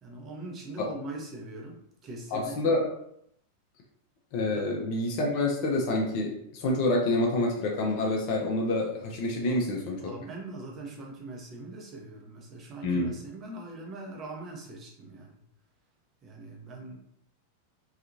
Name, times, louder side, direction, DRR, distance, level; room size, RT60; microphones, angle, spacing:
voice 1, 0.0-2.7 4.5-4.6 9.4-9.6 10.0-15.4 16.2-17.0, right 2 dB, 25° right, 0 dB, 0.7 m, -42 dB
voice 2, 2.3-2.9 4.3-10.1 12.8-13.2, left 2 dB, 45° left, 0 dB, 0.5 m, -27 dB
2.7 x 2.4 x 2.5 m, 0.72 s
figure-of-eight pair, 90°, 0 cm